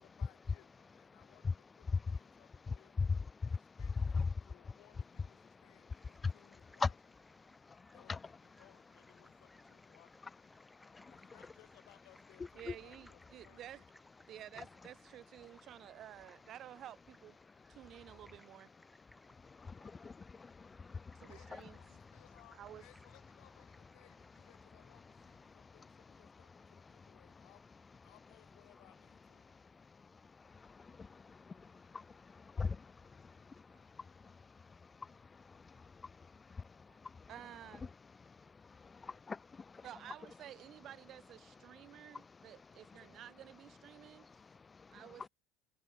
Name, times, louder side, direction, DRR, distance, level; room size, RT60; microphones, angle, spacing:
voice 1, 0.0-3.0 3.4-6.9 7.9-10.3 11.1-13.8 21.3-27.6 28.0-29.5, left 25 dB, 70° left, 5.7 m, -66 dB
voice 2, 1.9-2.4 2.7-4.3 5.5-6.3 6.8-6.9 7.4-8.2 10.6-11.2 12.7-12.8 19.1-21.3 25.5-25.7 27.0-27.5 29.4-32.8 33.3-35.5 36.0-36.1 36.6-37.3 38.5-39.8 41.7-42.5 42.9-43.2 43.9-45.3, left 4 dB, 25° left, 0.3 m, -42 dB
sound 1, 5.9-25.5, equal, ahead, 4.0 m, -66 dB
voice 3, 12.5-13.8 14.3-17.0 17.2-17.3 17.8-18.7 21.2-21.8 22.5-22.8 36.9-37.0 37.3-37.9 39.8-44.3 44.9-45.3, right 12 dB, 50° right, 1.3 m, -52 dB
supercardioid pair, 95°, 0 cm